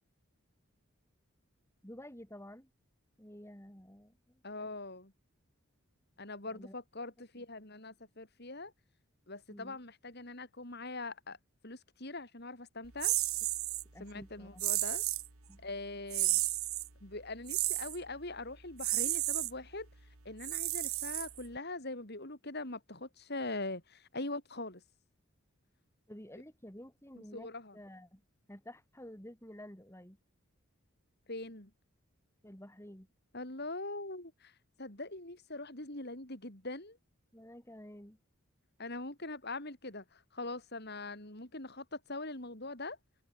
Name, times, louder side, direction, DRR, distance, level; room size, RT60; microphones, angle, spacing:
voice 1, 1.8-2.7 3.2-4.7 6.4-6.7 9.5-9.8 13.9-14.6 15.5-15.6 26.1-28.2 28.5-30.2 32.4-33.1 37.3-38.2, equal, 10° left, 5.0 m, -51 dB
voice 2, 4.4-5.1 6.2-8.7 9.3-11.4 11.6-13.1 14.0-15.0 15.6-16.4 17.0-19.9 20.2-24.8 27.2-27.8 31.3-31.7 33.3-37.0 38.8-43.0, left 2 dB, 50° left, 4.9 m, -42 dB
sound 1, 13.0-13.8 14.6-15.3 16.1-16.9 17.5-18.0 18.8-19.5 20.4-21.6, right 17 dB, 90° right, 2.4 m, -32 dB
head